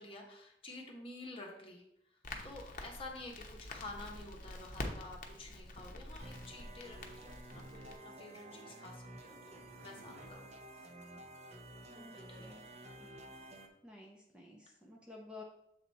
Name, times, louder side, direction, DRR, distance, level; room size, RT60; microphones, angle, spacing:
voice 1, 0.0-1.8 2.4-10.6 12.0-13.3, left 2 dB, 30° left, 0 dB, 1.3 m, -50 dB
Crackle, 2.2-8.0, left 2 dB, 50° left, 0.9 m, -47 dB
sound 1, 6.2-13.7, right 1 dB, 40° right, 0.8 m, -52 dB
sound 2, 8.5-10.3, right 1 dB, 75° right, 1.2 m, -61 dB
voice 2, 11.9-12.6 13.8-15.4, left 2 dB, 5° right, -1 dB, 0.7 m, -53 dB
7.2 x 4.1 x 4.2 m, 0.79 s
head